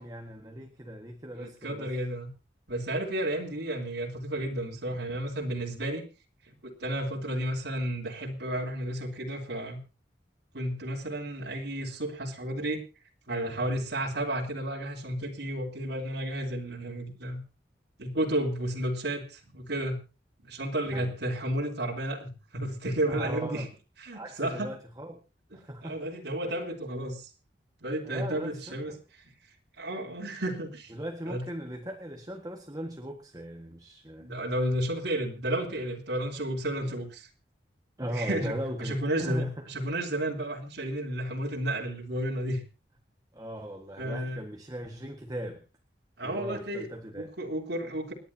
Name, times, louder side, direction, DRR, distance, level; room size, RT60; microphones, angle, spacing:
voice 1, 0.0-1.9 20.9-21.1 23.0-23.7 24.1-25.2 25.5-26.0 28.0-29.0 30.9-34.3 36.8-36.9 38.0-39.7 43.3-45.6 46.2-47.3, right 1 dB, 20° right, 3 dB, 1.6 m, -39 dB
voice 2, 1.4-2.3 2.7-6.0 6.5-9.8 10.5-12.8 13.3-17.4 18.0-20.0 20.4-23.6 24.0-24.7 25.8-27.3 27.8-28.9 29.8-30.9 31.3-31.5 34.2-37.3 38.1-38.5 38.8-42.6 44.0-44.4 46.2-46.9 47.1-48.1, right 1 dB, 75° right, -2 dB, 3.5 m, -32 dB
29.0 x 10.5 x 2.8 m, 0.32 s
head